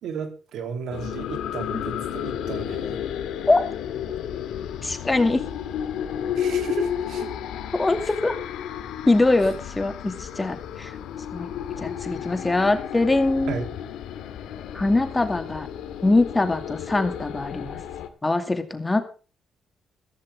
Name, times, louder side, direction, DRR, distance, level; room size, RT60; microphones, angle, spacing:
voice 1, 0.0-3.0 6.4-7.3 13.5-13.7, right 6 dB, 80° right, 6 dB, 3.1 m, -34 dB
sound 1, 0.9-18.1, left 9 dB, 85° left, 2.1 m, -32 dB
voice 2, 4.8-5.4 7.7-8.4 9.0-11.0 11.3-11.5 11.8-13.6 14.7-15.7 16.0-17.8 18.2-19.0, left 2 dB, 20° left, 7 dB, 2.4 m, -22 dB
15.5 x 14.0 x 3.6 m, 0.36 s
cardioid pair, 90°, 0 cm